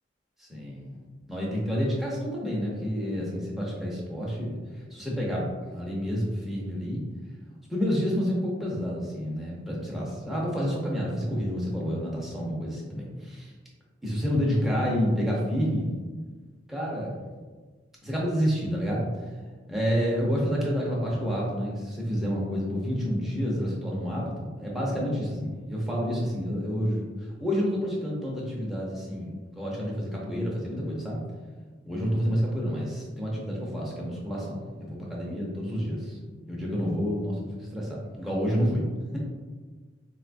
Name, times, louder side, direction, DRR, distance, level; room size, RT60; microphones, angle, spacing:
voice 1, 0.4-1.0 1.3-4.6 4.9-5.5 5.7-7.0 7.7-13.5 14.0-15.9 16.7-17.2 18.0-19.2 19.7-27.0 27.4-31.2 31.9-36.2 36.5-38.8, equal, ahead, -5 dB, 0.7 m, -29 dB
4.3 x 2.2 x 2.5 m, 1.4 s
head